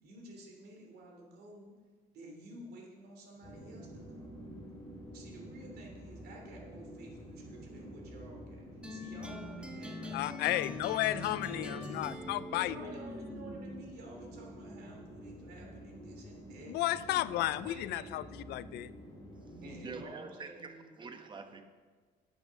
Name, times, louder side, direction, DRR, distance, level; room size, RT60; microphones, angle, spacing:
voice 1, 0.0-1.7 2.1-3.9 5.1-11.2 11.5-12.0 12.5-16.7 17.1-18.2 18.7-18.8 19.6-20.9, right 1 dB, 70° right, 0 dB, 2.9 m, -51 dB
sound 1, 3.4-20.0, equal, 20° left, 2.6 m, -49 dB
sound 2, 8.8-13.9, left 2 dB, 5° right, 0.8 m, -43 dB
voice 2, 10.1-12.9 16.7-18.9, left 15 dB, 75° left, 17 dB, 0.4 m, -33 dB
voice 3, 19.8-21.6, right 4 dB, 30° right, 6 dB, 1.0 m, -46 dB
8.9 x 6.3 x 6.4 m, 1.5 s
cardioid pair, 110°, 17 cm